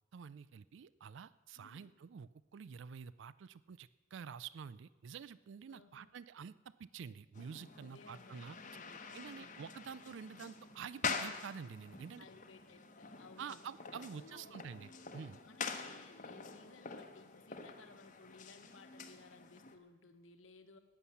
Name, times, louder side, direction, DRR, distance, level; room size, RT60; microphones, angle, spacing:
voice 1, 0.1-6.5 6.8-8.6 9.1-12.3 13.4-15.4, right 6 dB, 60° right, 18 dB, 0.4 m, -48 dB
voice 2, 1.5-1.9 5.7-6.1 7.7-9.6 12.2-13.6 13.9-14.7 15.4-20.8, left 3 dB, 70° left, 7 dB, 1.3 m, -60 dB
sound 1, 7.3-19.8, left 5 dB, 40° left, 1.1 m, -46 dB
14.0 x 9.8 x 7.1 m, 1.2 s
head